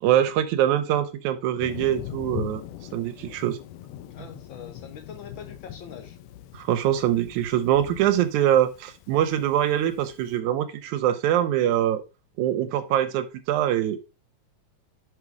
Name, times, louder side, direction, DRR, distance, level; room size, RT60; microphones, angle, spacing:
voice 1, 0.0-2.6 2.9-3.6 6.5-12.0 12.4-14.0, right 11 dB, 90° right, 2.1 m, -23 dB
Thunder, 1.6-10.3, left 12 dB, 80° left, 1.9 m, -41 dB
voice 2, 4.1-6.2, left 7 dB, 55° left, 1.6 m, -43 dB
6.0 x 5.6 x 4.7 m
omnidirectional pair, 3.3 m